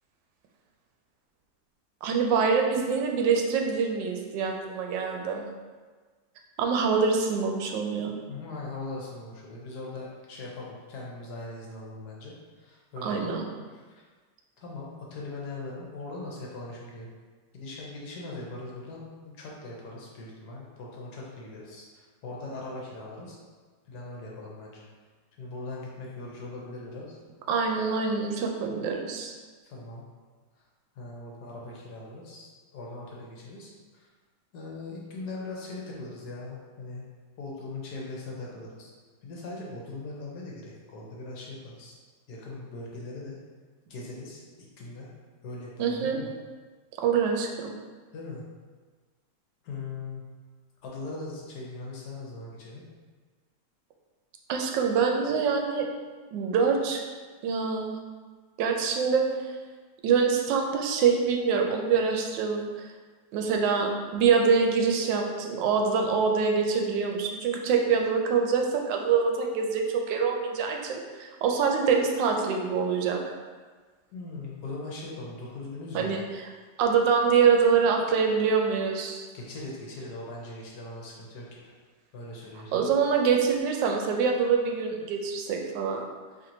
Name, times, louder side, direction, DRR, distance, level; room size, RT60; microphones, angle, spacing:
voice 1, 2.0-5.5 6.6-8.2 13.0-13.5 27.5-29.3 45.8-46.2 47.0-47.7 54.5-55.9 56.3-57.0 57.4-58.0 58.6-59.5 60.0-62.9 63.3-73.2 75.9-76.2 76.8-79.3 82.7-86.1, right 5 dB, 85° right, 2 dB, 1.2 m, -25 dB
voice 2, 8.3-13.4 13.7-14.0 14.6-17.1 17.5-23.4 23.9-24.9 25.4-27.2 29.6-30.0 30.9-34.1 34.5-37.1 37.4-38.9 39.2-42.0 42.3-43.4 43.9-44.4 44.8-45.1 45.4-46.3 48.1-48.4 49.6-50.2 50.8-52.9 74.1-76.2 79.3-81.7 82.1-82.9, left 2 dB, 70° left, -3 dB, 1.3 m, -40 dB
4.3 x 3.1 x 2.6 m, 1.4 s
omnidirectional pair, 1.9 m